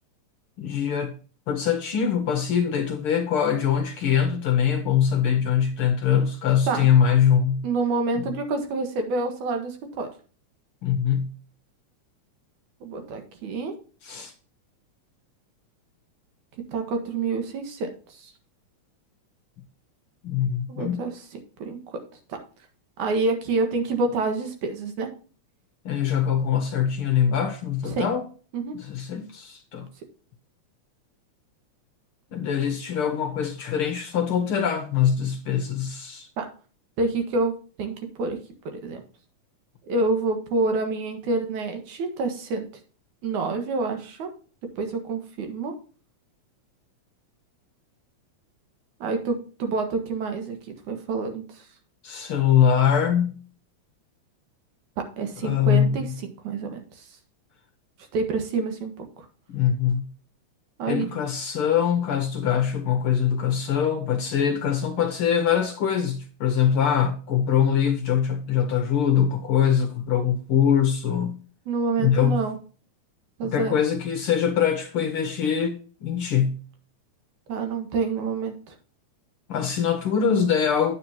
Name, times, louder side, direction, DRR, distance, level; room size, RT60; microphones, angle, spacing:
voice 1, 0.6-1.1 1.5-7.6 8.1-8.2 10.8-11.3 14.0-14.3 20.2-21.0 25.8-28.2 28.7-29.9 32.3-36.3 52.0-53.4 55.4-56.1 59.5-60.1 60.9-71.4 72.0-72.4 73.4-76.5 79.5-81.0, left 8 dB, 70° left, 1.4 m, -23 dB
voice 2, 7.6-10.1 12.8-13.7 16.7-17.9 18.2-18.3 20.7-21.1 21.6-22.0 23.0-25.1 27.9-28.1 28.5-28.8 36.4-36.5 37.0-37.5 37.8-38.4 38.7-39.0 39.9-42.6 43.2-44.3 44.8-45.7 49.0-50.6 50.9-51.6 55.2-56.1 56.4-57.1 58.1-59.1 60.8-61.1 71.7-72.6 73.4-73.7 77.5-78.7, right 3 dB, 75° right, 3.0 m, -27 dB
9.5 x 8.4 x 2.9 m
omnidirectional pair, 3.4 m